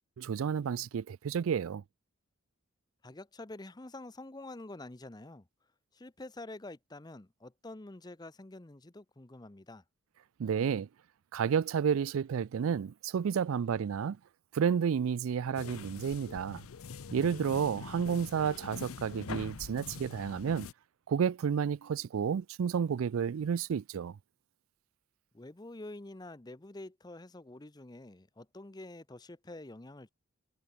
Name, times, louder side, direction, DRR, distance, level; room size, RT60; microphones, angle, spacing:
voice 1, 0.2-1.8 10.4-10.9 11.3-14.2 14.5-16.6 17.1-20.7 21.1-24.1, right 7 dB, 75° right, 0.4 m, -31 dB
voice 2, 3.0-5.4 5.9-9.8 25.3-30.1, left 2 dB, 20° left, 0.7 m, -47 dB
sound 1, 15.5-20.7, left 5 dB, 80° left, 0.6 m, -44 dB
head